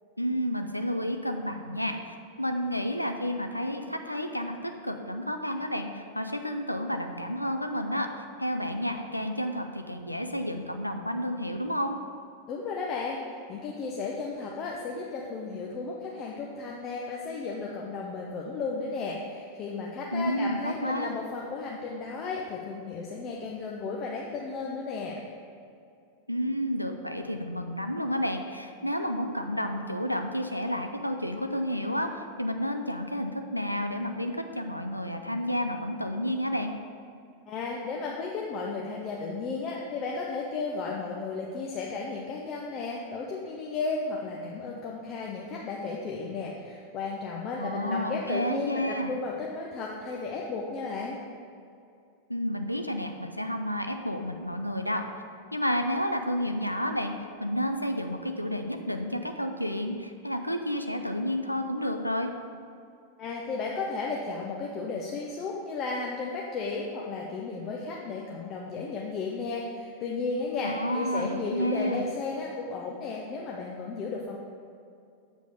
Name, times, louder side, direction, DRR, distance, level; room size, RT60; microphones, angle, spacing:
voice 1, 0.2-12.0 20.1-21.1 26.3-36.7 47.6-49.1 52.3-55.0 55.5-62.3 70.6-72.1, equal, 90° left, 5 dB, 0.4 m, -31 dB
voice 2, 12.5-25.2 37.4-51.2 63.2-74.4, left 4 dB, 35° left, -2 dB, 0.8 m, -34 dB
7.6 x 5.2 x 5.0 m, 2.5 s
figure-of-eight pair, 90°, 0 cm